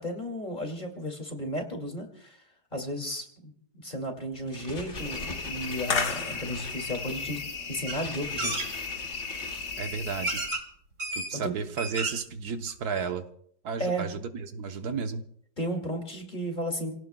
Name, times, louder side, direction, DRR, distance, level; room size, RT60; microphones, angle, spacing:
voice 1, 0.0-2.4 2.7-7.4 7.7-8.5 11.3-11.5 13.8-14.1 15.6-16.9, equal, 30° left, 3 dB, 2.4 m, -34 dB
sound 1, 4.3-10.2, left 2 dB, 45° left, 2.5 m, -44 dB
sound 2, 4.9-10.5, left 5 dB, 85° left, 2.1 m, -34 dB
sound 3, 7.9-8.0 8.4-8.7 9.6-9.7 10.2-10.6 11.0-11.3 11.6-12.3 12.7-12.8 13.0-13.1, right 2 dB, 50° right, 2.4 m, -32 dB
voice 2, 9.8-10.4 11.1-13.3 13.6-15.2, right 5 dB, 75° right, 7 dB, 1.5 m, -33 dB
29.5 x 17.5 x 2.3 m, 0.67 s
omnidirectional pair, 1.7 m